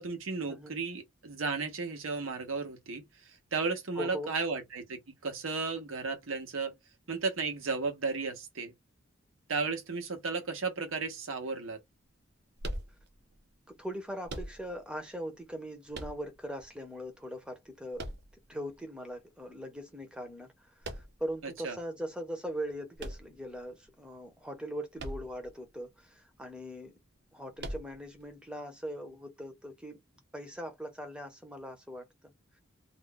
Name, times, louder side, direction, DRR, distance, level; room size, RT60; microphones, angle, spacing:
voice 1, 0.0-3.0 3.5-6.7 7.1-8.7 9.5-11.8 21.4-21.8, right 4 dB, 80° right, 0.8 m, -34 dB
voice 2, 4.0-4.3 13.7-18.1 18.5-27.0 27.3-30.0 30.3-32.3, equal, 5° right, 0.7 m, -40 dB
sound 1, 12.6-13.4 14.2-15.0 15.9-16.6 17.9-18.8 20.8-21.4 23.0-23.8 25.0-25.5 25.8-25.9 27.6-28.2, right 1 dB, 55° right, 0.6 m, -41 dB
2.5 x 2.2 x 3.7 m
head